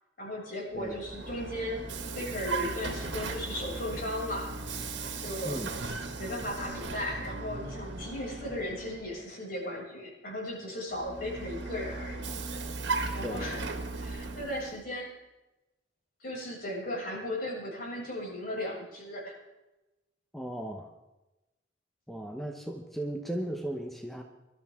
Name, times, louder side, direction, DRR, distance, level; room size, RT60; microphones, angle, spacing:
voice 1, 0.2-1.8 2.1-4.6 5.2-5.6 6.2-12.2 13.1-13.7 14.0-15.1 16.2-19.4, left 1 dB, 55° left, -4 dB, 6.6 m, -36 dB
Vehicle, 0.7-9.2 10.9-14.8, right 3 dB, 80° right, 1.9 m, -37 dB
voice 2, 20.3-20.9 22.1-24.2, right 1 dB, ahead, 3 dB, 1.0 m, -36 dB
22.5 x 12.5 x 3.6 m, 1.0 s
head